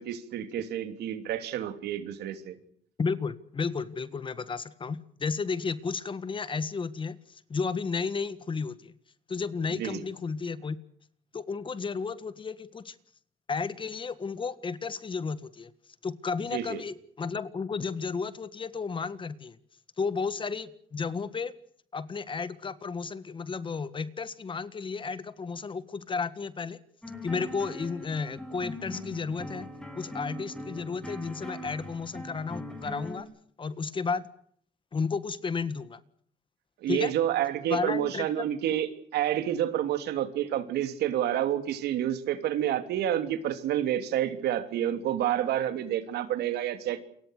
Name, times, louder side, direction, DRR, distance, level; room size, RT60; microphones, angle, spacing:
voice 1, 0.0-2.5 9.7-10.0 16.5-16.8 36.8-47.0, right 11 dB, 75° right, 9 dB, 3.1 m, -29 dB
voice 2, 3.0-8.9 9.3-10.8 11.3-12.9 13.5-15.7 16.0-19.6 20.0-21.5 21.9-26.8 27.2-29.7 29.9-33.3 33.6-34.3 34.9-36.0 36.9-37.1 37.7-38.5, left 5 dB, 30° left, 14 dB, 1.7 m, -33 dB
sound 1, 27.0-33.2, left 1 dB, 5° left, 6.4 m, -41 dB
28.5 x 23.5 x 6.6 m, 0.63 s
cardioid pair, 110°, 17 cm